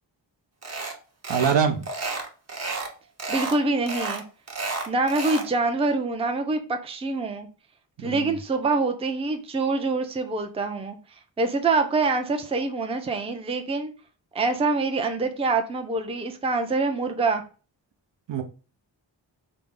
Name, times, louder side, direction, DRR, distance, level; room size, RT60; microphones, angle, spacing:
sound 1, 0.6-1.0 1.2-1.6 1.8-2.9 3.2-3.6 3.9-5.5, right 3 dB, 35° right, 0.8 m, -31 dB
voice 1, 1.3-1.9 8.0-8.3 18.3-18.4, right 7 dB, 70° right, 0.7 m, -23 dB
voice 2, 3.3-4.2 4.9-7.5 8.0-11.0 11.4-13.9 14.3-17.4, right 3 dB, 15° right, 0.4 m, -25 dB
3.9 x 2.0 x 3.6 m
wide cardioid pair, 65°, 46 cm